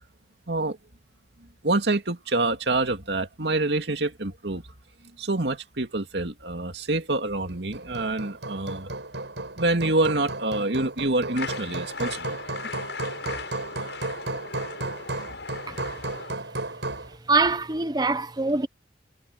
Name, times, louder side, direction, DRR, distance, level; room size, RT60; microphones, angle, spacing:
voice 1, 1.6-4.6 5.2-8.9 9.6-12.4 15.3-15.4, right 2 dB, 70° right, 2.5 m, -26 dB
Hammer, 7.5-17.2, right 2 dB, 85° right, 5.9 m, -34 dB
sound 1, 11.3-16.3, left 4 dB, 75° left, 8.0 m, -38 dB
voice 2, 17.3-18.7, right 3 dB, 25° right, 0.9 m, -23 dB
head